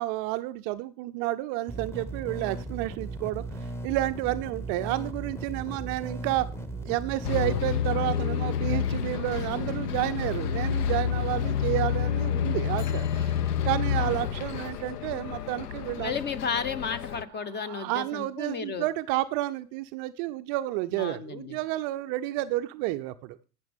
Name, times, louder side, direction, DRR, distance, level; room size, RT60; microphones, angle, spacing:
voice 1, 0.0-6.5 6.8-13.4 13.6-16.2 17.5-23.4, right 16 dB, 40° right, 11 dB, 0.4 m, -30 dB
sound 1, 1.7-7.6, right 2 dB, 5° left, 1.1 m, -37 dB
Bus, 7.2-17.2, left 8 dB, 75° left, 0.7 m, -29 dB
voice 2, 15.9-18.9 20.9-21.6, left 6 dB, 20° left, 17 dB, 0.7 m, -33 dB
12.0 x 8.9 x 3.4 m, 0.36 s
figure-of-eight pair, 80°, 47 cm